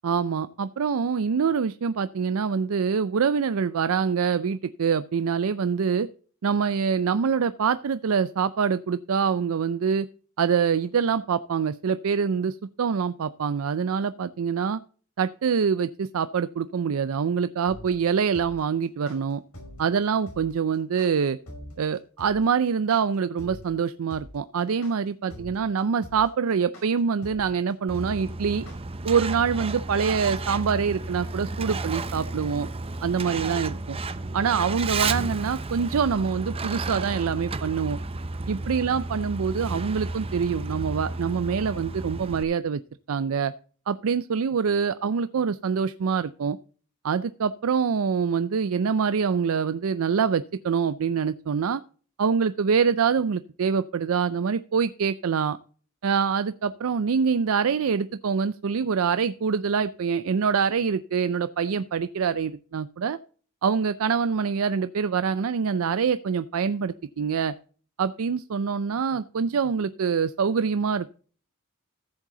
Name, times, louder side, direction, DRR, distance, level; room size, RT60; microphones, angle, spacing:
voice 1, 0.0-6.1 6.4-10.1 10.4-14.8 15.2-19.4 19.8-21.4 21.8-28.6 29.0-32.7 33.0-34.0 34.3-38.0 38.5-42.8 43.1-43.5 43.9-46.6 47.0-51.8 52.2-55.6 56.0-63.2 63.6-67.5 68.0-71.1, right 6 dB, 70° right, 13 dB, 0.4 m, -25 dB
sound 1, 17.7-28.8, equal, 75° left, 5.1 m, -43 dB
Truck, 27.9-42.4, right 3 dB, 25° right, 0.6 m, -32 dB
14.5 x 7.4 x 3.8 m, 0.42 s
head